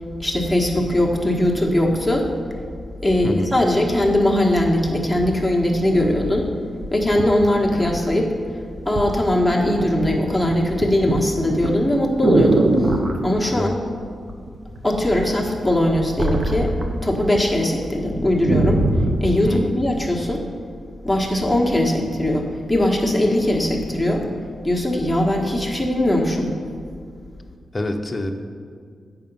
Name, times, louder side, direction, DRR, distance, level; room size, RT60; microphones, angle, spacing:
voice 1, 0.2-2.3 3.0-6.5 6.9-8.3 8.8-12.7 13.2-13.7 14.8-16.7 17.0-18.8 19.2-20.4 21.0-24.3 24.6-26.5, left 1 dB, ahead, -2 dB, 1.3 m, -20 dB
sound 1, 6.2-6.3 6.8-8.3 9.0-9.2 9.5-10.0 10.3-13.2 14.3-14.8 15.1-17.4 17.7-17.8 18.1-19.3 19.9-20.0, right 2 dB, 50° right, 0.8 m, -22 dB
voice 2, 27.7-28.3, left 1 dB, 25° left, 4 dB, 0.7 m, -26 dB
8.4 x 5.9 x 5.4 m, 2.2 s
cardioid pair, 95°, 0 cm